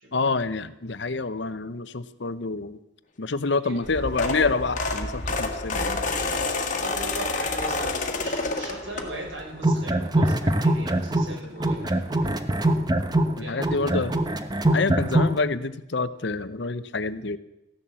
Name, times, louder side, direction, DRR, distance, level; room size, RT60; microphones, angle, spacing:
voice 1, 0.1-2.8 3.2-6.0 13.4-14.1 14.7-17.4, left 3 dB, 60° left, 14 dB, 0.8 m, -27 dB
voice 2, 3.5-3.9 6.2-12.7 13.4-13.8, right 1 dB, 80° right, -1 dB, 6.5 m, -39 dB
sound 1, 3.8-9.5 9.9-10.2 11.4-11.5 11.8-11.9 12.2-12.3, left 3 dB, 40° left, 1.6 m, -29 dB
sound 2, 9.5-11.3 11.6-15.4, right 1 dB, 20° right, 1.0 m, -22 dB
15.0 x 11.0 x 7.6 m, 0.92 s
head